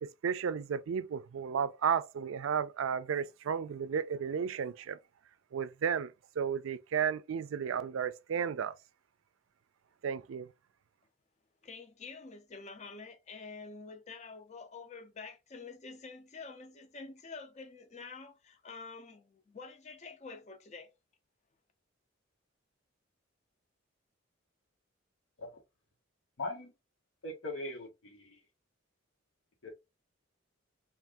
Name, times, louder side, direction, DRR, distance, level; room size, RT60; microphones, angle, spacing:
voice 1, 0.0-5.0 5.5-8.7 10.0-10.5, right 7 dB, 85° right, 0.4 m, -33 dB
voice 2, 11.6-20.9, left 4 dB, 35° left, 0.5 m, -48 dB
voice 3, 26.4-26.7 27.2-28.4 29.6-29.7, left 2 dB, 85° left, 1.2 m, -40 dB
2.6 x 2.5 x 3.5 m
head